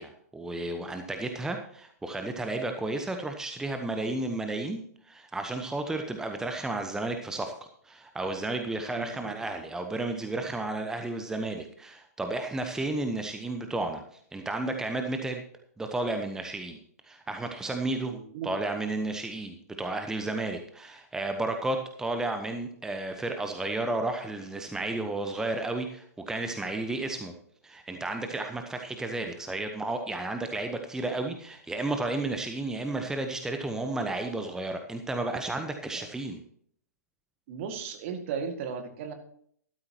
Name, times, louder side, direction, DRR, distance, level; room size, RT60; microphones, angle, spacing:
voice 1, 0.0-7.5 7.8-14.0 14.3-15.4 15.8-16.8 17.0-18.1 18.4-27.3 27.6-36.4, right 2 dB, 5° right, 5 dB, 1.0 m, -32 dB
voice 2, 9.0-9.4 18.1-18.5 35.9-36.0 37.5-39.1, right 6 dB, 45° right, 6 dB, 2.1 m, -36 dB
13.0 x 13.0 x 3.0 m, 0.63 s
figure-of-eight pair, 115°, 9 cm